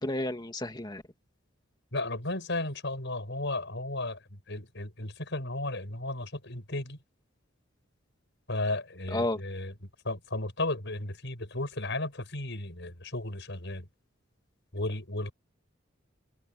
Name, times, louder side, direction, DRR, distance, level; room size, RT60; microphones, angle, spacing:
voice 1, 0.0-1.0 9.1-9.4, left 1 dB, 20° left, 2.6 m, -31 dB
voice 2, 1.9-4.2 4.5-7.0 8.5-9.7 10.0-13.9 14.7-15.3, left 2 dB, 60° left, 7.2 m, -34 dB
head